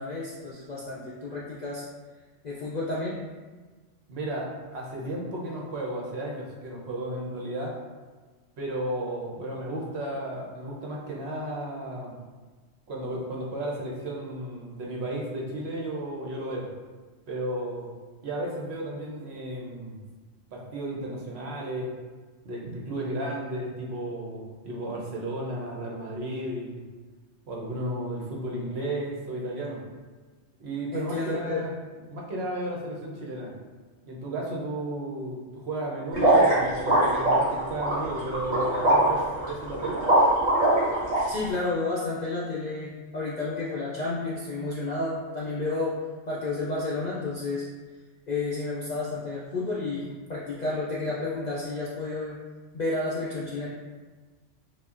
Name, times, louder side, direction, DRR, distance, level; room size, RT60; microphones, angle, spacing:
voice 1, 0.0-1.8 2.4-3.2 30.9-31.7 41.1-47.6 48.3-52.4 52.7-53.7, left 3 dB, 60° left, -6 dB, 0.4 m, -31 dB
voice 2, 4.1-7.8 8.6-12.2 12.9-16.7 17.3-17.9 18.2-20.0 20.5-21.9 22.4-26.8 27.5-29.8 30.6-31.7 32.1-33.5 34.1-40.1, right 1 dB, 65° right, -2 dB, 0.9 m, -33 dB
sound 1, 36.1-41.2, right 1 dB, 40° right, 1.4 m, -21 dB
5.4 x 2.1 x 2.4 m, 1.4 s
omnidirectional pair, 1.3 m